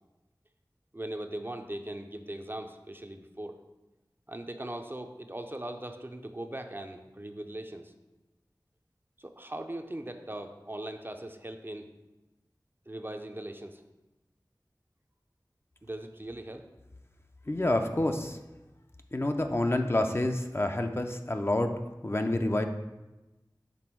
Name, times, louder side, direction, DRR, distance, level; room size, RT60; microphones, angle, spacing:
voice 1, 0.9-3.6 4.3-7.9 9.2-11.9 12.9-13.8 15.8-16.7, right 1 dB, 30° right, 6 dB, 0.4 m, -40 dB
voice 2, 17.5-18.4 19.1-21.7 22.0-22.6, left 1 dB, 30° left, 5 dB, 0.4 m, -28 dB
6.1 x 3.4 x 4.5 m, 1.1 s
wide cardioid pair, 45°, 8 cm